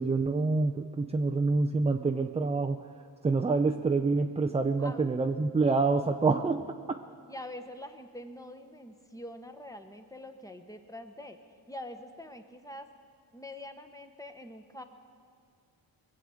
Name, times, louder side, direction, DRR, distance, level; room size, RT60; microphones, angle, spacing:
voice 1, 0.0-2.8 3.2-6.7, right 3 dB, 15° right, 5 dB, 0.4 m, -27 dB
voice 2, 7.3-11.4 11.7-12.9 13.3-14.8, left 1 dB, 10° left, 7 dB, 0.9 m, -44 dB
21.5 x 7.7 x 8.3 m, 2.1 s
wide cardioid pair, 120°, 43 cm